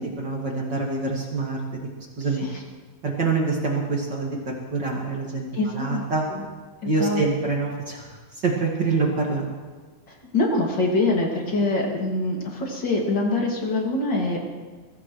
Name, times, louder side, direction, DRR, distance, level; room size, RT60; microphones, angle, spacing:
voice 1, 0.0-2.5 3.0-6.2 6.8-8.1 8.4-9.6, right 3 dB, 40° right, -2 dB, 1.9 m, -26 dB
voice 2, 5.5-6.0 6.3-6.4 6.8-7.2 10.3-14.4, left 2 dB, 35° left, -1 dB, 2.4 m, -24 dB
22.0 x 16.0 x 3.2 m, 1.4 s
omnidirectional pair, 4.3 m